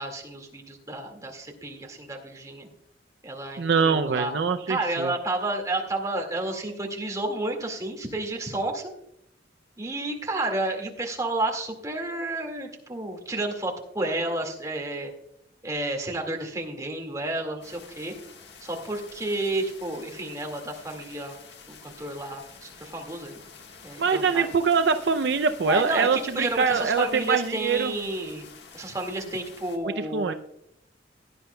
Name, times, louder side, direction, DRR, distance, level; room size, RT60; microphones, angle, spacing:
voice 1, 0.0-2.7 3.2-4.3 4.7-8.8 9.8-15.1 15.6-18.1 18.6-21.4 21.7-23.4 23.8-24.5 25.7-28.5 28.7-30.3, right 2 dB, 20° right, 1 dB, 1.9 m, -31 dB
voice 2, 3.6-5.1 24.0-27.9 30.1-30.3, right 5 dB, 65° right, 8 dB, 0.5 m, -23 dB
sound 1, 17.6-29.8, left 5 dB, 65° left, 1.5 m, -48 dB
16.5 x 10.5 x 2.2 m, 0.77 s
head